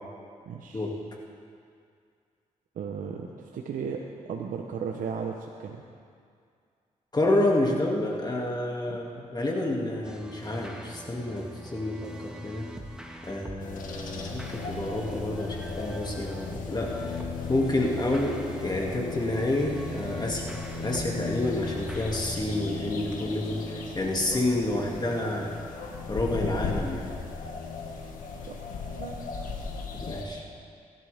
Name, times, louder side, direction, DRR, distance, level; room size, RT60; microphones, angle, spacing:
voice 1, 0.5-0.9 2.7-5.8 8.8-9.0 28.5-29.2, right 6 dB, 80° right, 1 dB, 0.9 m, -36 dB
voice 2, 7.1-12.7 13.2-17.2 17.5-25.6 26.1-27.1 30.0-30.4, left 1 dB, 30° left, -2 dB, 2.3 m, -29 dB
sound 1, 10.0-22.4, equal, 5° right, 1.6 m, -44 dB
sound 2, 13.6-30.3, left 4 dB, 80° left, 1.7 m, -36 dB
20.5 x 12.0 x 3.6 m, 2.3 s
cardioid pair, 65°, 14 cm